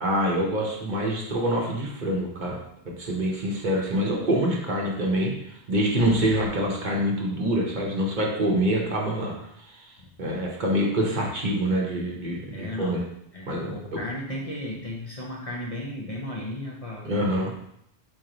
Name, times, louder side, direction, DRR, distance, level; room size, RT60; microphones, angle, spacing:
voice 1, 0.0-2.6 2.8-9.3 9.7-9.9 10.2-13.0 13.5-14.0 17.0-17.5, right 1 dB, 45° right, -1 dB, 0.9 m, -26 dB
sound 1, 2.9-3.3 3.7-3.8 6.0-6.5, left 1 dB, ahead, 0.5 m, -43 dB
voice 2, 12.5-13.1 13.3-17.1, left 1 dB, 40° left, -3 dB, 0.6 m, -35 dB
4.6 x 3.1 x 3.8 m, 0.75 s
omnidirectional pair, 1.2 m